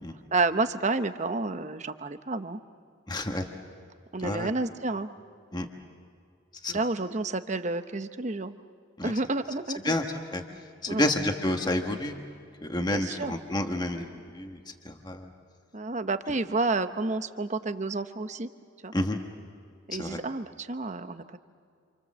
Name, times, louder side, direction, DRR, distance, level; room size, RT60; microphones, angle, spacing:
voice 1, 0.3-2.6 4.1-5.1 6.7-8.6 9.0-9.9 10.9-11.1 12.8-13.3 15.7-18.5 18.8-18.9 19.9-21.4, right 3 dB, 35° right, 10 dB, 0.9 m, -30 dB
voice 2, 3.1-3.5 4.2-4.5 5.5-5.7 6.6-6.8 9.0-9.1 9.8-10.0 10.3-10.4 10.8-12.1 12.6-14.6 14.8-15.3 18.9-19.2 20.0-20.2, left 1 dB, 20° left, 4 dB, 1.4 m, -29 dB
28.0 x 28.0 x 7.5 m, 2.3 s
head